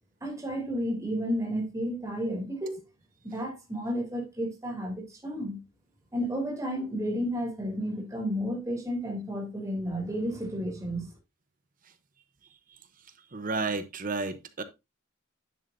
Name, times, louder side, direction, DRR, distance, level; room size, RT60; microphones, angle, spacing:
voice 1, 0.2-2.8 3.2-5.6 6.1-11.1, equal, 15° right, 2.8 m, -32 dB
voice 2, 13.3-14.6, right 3 dB, 40° right, 0.8 m, -31 dB
10.0 x 7.2 x 2.6 m
head